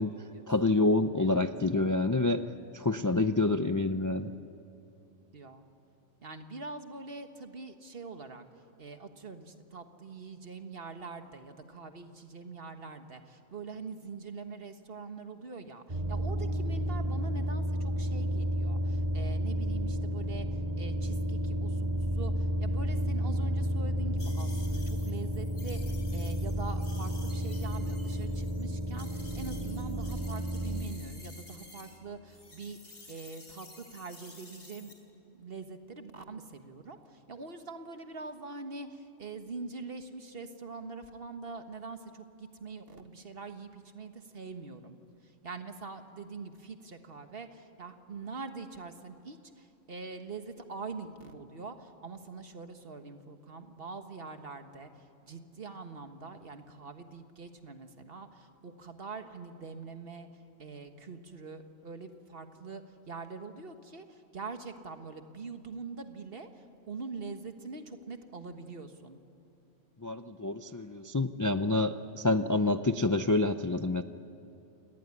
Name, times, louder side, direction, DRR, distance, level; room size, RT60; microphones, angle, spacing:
voice 1, 0.5-2.4 2.7-4.3 70.0-74.0, left 2 dB, 25° left, 9 dB, 0.4 m, -27 dB
voice 2, 5.3-5.7 6.2-8.5 8.8-32.8 33.1-34.9 35.2-45.0 45.2-60.3 60.6-69.2, right 4 dB, 50° right, 7 dB, 1.6 m, -44 dB
sound 1, 15.9-30.8, equal, 35° right, 3.1 m, -31 dB
sound 2, 24.2-32.0 32.3-34.9, left 2 dB, 60° left, 3.8 m, -53 dB
29.0 x 19.0 x 9.8 m, 2.7 s
omnidirectional pair, 1.3 m